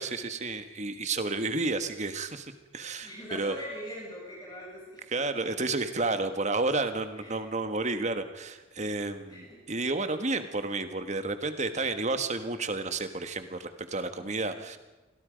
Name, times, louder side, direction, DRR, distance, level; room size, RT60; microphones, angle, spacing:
voice 1, 0.0-3.5 5.1-14.8, right 3 dB, 35° right, 9 dB, 1.5 m, -31 dB
voice 2, 3.0-5.7 7.1-7.4 9.3-9.7 14.2-14.7, equal, 20° left, -4 dB, 7.5 m, -43 dB
29.5 x 23.0 x 5.2 m, 1.1 s
head